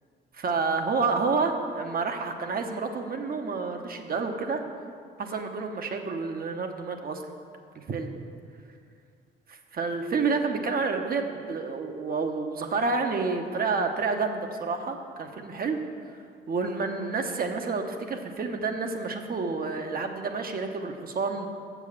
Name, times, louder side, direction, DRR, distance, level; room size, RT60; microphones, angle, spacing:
voice 1, 0.3-4.6 5.2-7.2 7.7-8.1 9.5-15.8 16.5-21.5, right 4 dB, 50° right, 5 dB, 1.0 m, -29 dB
7.4 x 7.1 x 7.2 m, 2.3 s
cardioid pair, 90°, 20 cm